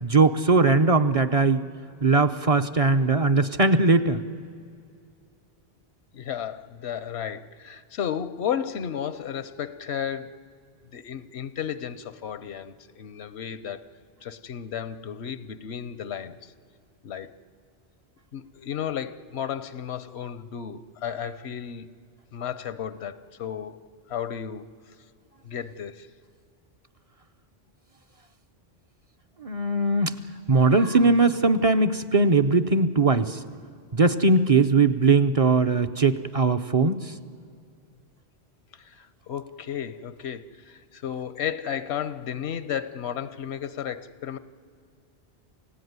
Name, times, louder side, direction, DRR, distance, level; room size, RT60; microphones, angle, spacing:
voice 1, 0.0-1.6 2.0-4.2 29.4-30.2 30.5-33.4 33.9-37.1, right 3 dB, 40° right, 0.7 m, -20 dB
voice 2, 6.1-10.4 10.9-13.8 14.2-16.5 17.0-17.4 18.3-22.0 22.3-24.7 25.4-26.1 38.7-44.4, left 8 dB, 85° left, 1.1 m, -33 dB
28.5 x 16.5 x 9.5 m
omnidirectional pair, 1.1 m